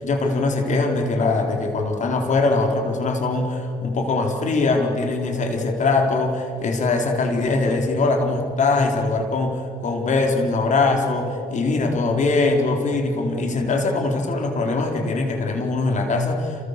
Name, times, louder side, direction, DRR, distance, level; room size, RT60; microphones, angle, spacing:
voice 1, 0.0-16.7, left 3 dB, 45° left, 3 dB, 4.3 m, -22 dB
29.5 x 28.5 x 6.9 m, 2.6 s
cardioid pair, 110°, 17 cm